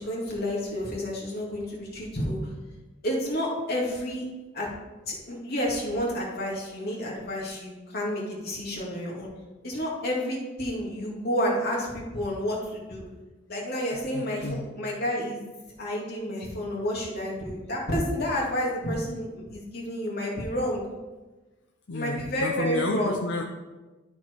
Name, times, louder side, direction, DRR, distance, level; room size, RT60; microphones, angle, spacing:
voice 1, 0.0-2.4 3.0-4.2 4.5-4.7 5.1-9.3 9.6-13.0 13.5-15.5 15.8-20.8 21.9-23.2, equal, 55° left, -3 dB, 2.4 m, -30 dB
voice 2, 13.9-14.7 21.9-23.4, left 3 dB, 70° left, 4 dB, 0.7 m, -31 dB
12.5 x 4.5 x 4.6 m, 1.2 s
head